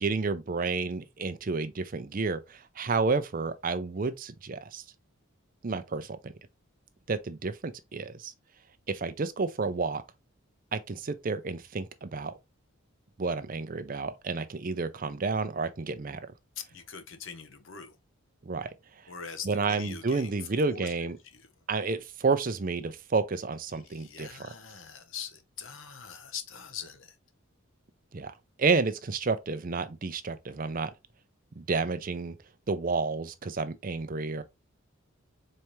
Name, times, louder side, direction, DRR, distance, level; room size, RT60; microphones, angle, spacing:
voice 1, 0.0-4.8 5.6-6.3 7.1-8.3 8.9-10.0 10.7-12.3 13.2-16.2 18.4-18.7 19.4-21.2 21.7-24.4 28.1-28.3 28.6-30.9 31.6-32.3 32.7-34.4, right 4 dB, 40° right, 0.5 m, -30 dB
voice 2, 16.6-18.0 19.1-20.3 20.6-20.9 21.3-21.5 23.8-27.1, left 7 dB, 65° left, 0.9 m, -42 dB
4.3 x 3.4 x 3.1 m
head